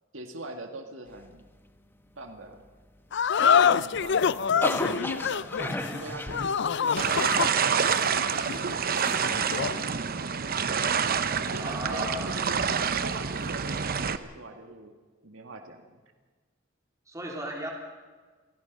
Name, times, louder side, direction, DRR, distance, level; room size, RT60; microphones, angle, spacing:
voice 1, 0.1-1.5 2.2-2.7 3.4-4.4 4.9-6.4 6.8-7.7 8.3-8.7 8.9-10.4 11.5-14.9 15.2-16.0, right 2 dB, 80° right, 5 dB, 2.0 m, -42 dB
sound 1, 3.1-9.8, left 7 dB, 65° left, 0.5 m, -26 dB
sound 2, 3.5-7.0, left 1 dB, 10° left, 1.2 m, -34 dB
voice 2, 5.6-6.1 11.6-12.4 17.1-17.7, right 1 dB, 15° right, -1 dB, 3.3 m, -36 dB
sound 3, 7.0-14.2, right 6 dB, 50° right, 0.9 m, -27 dB
27.0 x 17.5 x 5.4 m, 1.4 s
head